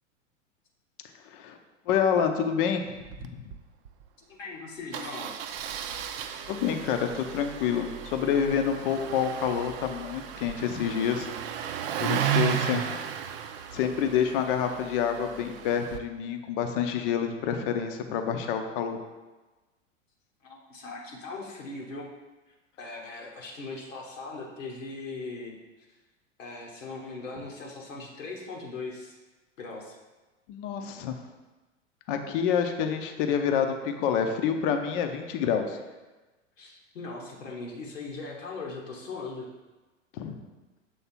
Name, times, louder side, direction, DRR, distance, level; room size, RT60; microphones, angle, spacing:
voice 1, 1.9-2.9 3.2-3.4 6.5-11.3 12.0-12.8 13.7-19.0 30.5-31.2 32.1-35.8 40.1-40.4, left 7 dB, 45° left, 6 dB, 0.7 m, -27 dB
Engine starting, 3.0-3.3 3.5-3.6 3.9-4.0 4.9-16.0, right 9 dB, 50° right, 0.5 m, -34 dB
voice 2, 4.3-5.3 12.5-13.1 20.4-22.1 22.5-25.6 25.9-26.0 26.4-29.2 29.6-30.0 36.6-39.5, left 3 dB, 80° left, -2 dB, 1.2 m, -39 dB
7.1 x 3.3 x 4.4 m, 1.2 s
figure-of-eight pair, 95°, 38 cm